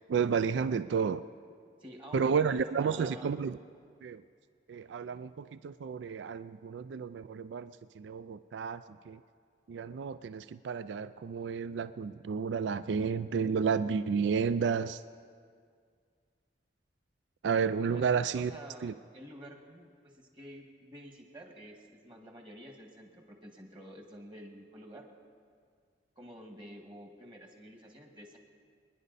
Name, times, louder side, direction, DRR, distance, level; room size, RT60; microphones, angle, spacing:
voice 1, 0.1-1.2 2.1-3.6 4.0-4.2 4.7-9.2 9.7-15.0 17.4-18.5 18.8-18.9, right 6 dB, 80° right, 14 dB, 0.3 m, -31 dB
voice 2, 1.8-3.3 17.9-18.0 18.3-25.1 26.1-28.4, equal, 25° right, 2 dB, 1.8 m, -49 dB
27.0 x 10.5 x 4.1 m, 2.1 s
head